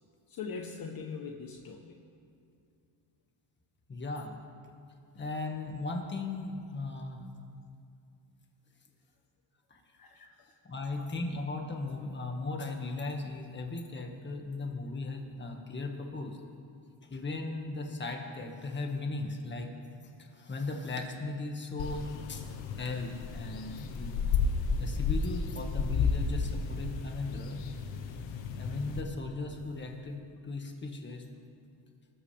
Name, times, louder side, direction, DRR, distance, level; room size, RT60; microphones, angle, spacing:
voice 1, 0.3-2.0 10.0-10.5 11.0-11.1, left 5 dB, 45° left, 2 dB, 1.2 m, -42 dB
voice 2, 3.9-4.4 5.2-7.2 9.7-9.8 10.6-16.4 17.1-19.7 20.2-22.5 22.8-24.1 24.8-27.6 28.5-31.2, left 3 dB, 25° left, 2 dB, 1.8 m, -37 dB
sound 1, 21.8-29.0, left 4 dB, 65° left, 1.3 m, -33 dB
25.5 x 13.5 x 3.5 m, 2.4 s
cardioid pair, 130°, 47 cm